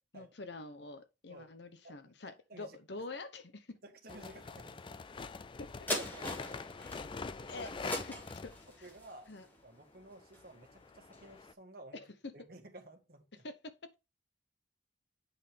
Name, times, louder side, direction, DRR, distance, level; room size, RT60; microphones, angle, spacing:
voice 1, 0.1-3.8 5.6-5.7 6.8-7.1 7.5-8.1 8.4-8.5 8.8-8.9 9.3-9.5 11.9-12.1 13.4-13.5, left 3 dB, 65° left, 0.9 m, -46 dB
voice 2, 2.2-2.8 3.8-4.8 5.9-6.7 8.1-8.2 8.7-9.3 9.6-12.0 12.3-13.4, right 1 dB, 50° right, 1.6 m, -53 dB
sound 1, 4.1-9.0 10.1-11.5, left 4 dB, 25° left, 0.3 m, -44 dB
sound 2, 5.9-10.6 11.1-11.2, left 1 dB, 10° left, 2.0 m, -42 dB
8.3 x 5.6 x 3.3 m
head